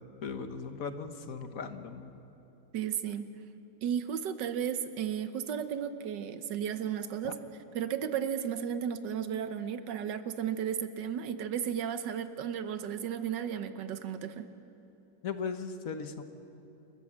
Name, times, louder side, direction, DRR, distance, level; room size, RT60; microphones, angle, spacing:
voice 1, 0.2-2.1 7.2-7.3 15.2-16.2, left 5 dB, 55° left, 8 dB, 1.4 m, -38 dB
voice 2, 2.7-3.4 3.8-7.4 7.7-14.5, right 8 dB, 75° right, 10 dB, 1.6 m, -34 dB
28.5 x 13.5 x 7.4 m, 3.0 s
omnidirectional pair, 2.0 m